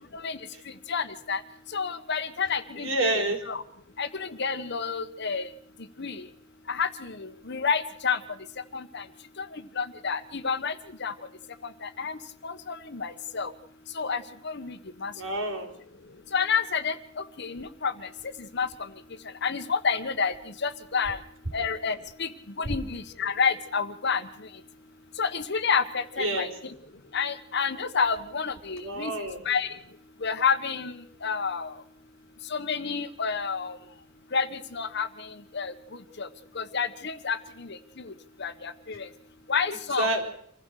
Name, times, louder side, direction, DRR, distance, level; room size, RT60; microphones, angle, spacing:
voice 1, 0.9-1.4 1.7-3.6 4.0-5.5 6.0-6.3 6.7-8.2 8.7-9.0 9.4-11.1 11.8-13.5 13.9-15.1 16.3-18.1 18.4-18.9 19.4-21.2 21.5-22.3 22.6-24.5 25.2-26.7 27.1-29.1 29.4-29.8 30.2-31.8 32.5-33.8 34.3-35.7 36.2-36.3 36.5-38.1 38.4-39.1 39.5-40.1, left 5 dB, 55° left, 11 dB, 1.3 m, -30 dB
voice 2, 2.8-3.4 15.2-15.7 22.7-22.8 26.2-26.5 28.8-29.4 40.0-40.3, right 1 dB, 75° right, 3 dB, 4.6 m, -28 dB
26.0 x 16.0 x 6.6 m, 0.67 s
head